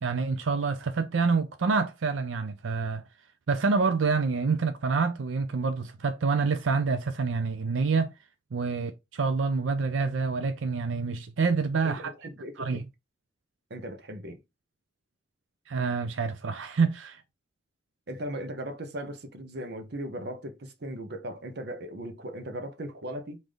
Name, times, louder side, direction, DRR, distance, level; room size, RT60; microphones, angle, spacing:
voice 1, 0.0-3.0 3.5-8.1 8.5-12.1 12.6-12.8 15.7-17.2, right 4 dB, 85° right, 0.5 m, -27 dB
voice 2, 11.8-12.8 13.7-14.4 18.1-23.4, right 1 dB, 60° right, 0.8 m, -38 dB
5.0 x 2.6 x 3.8 m
head